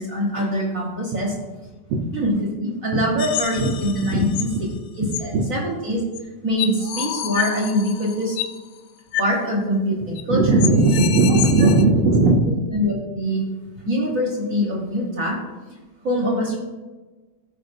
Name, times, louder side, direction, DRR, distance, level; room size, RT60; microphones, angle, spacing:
voice 1, 0.0-1.3 2.1-4.7 5.0-6.0 6.4-8.4 9.2-10.6 11.6-11.7 12.0-12.1 12.7-13.5 13.8-15.4 16.0-16.6, equal, 50° right, -2 dB, 1.0 m, -24 dB
sound 1, 3.2-4.6 5.1-5.2 6.1-6.2 6.6-8.6 9.1-9.3 9.6-9.7 10.2-10.3 10.6-11.8, left 11 dB, 80° left, 1.6 m, -29 dB
voice 2, 4.0-4.4 4.7-5.4 10.3-12.6, right 2 dB, 75° right, -2 dB, 1.2 m, -18 dB
15.0 x 5.1 x 2.7 m, 1.2 s
omnidirectional pair, 3.4 m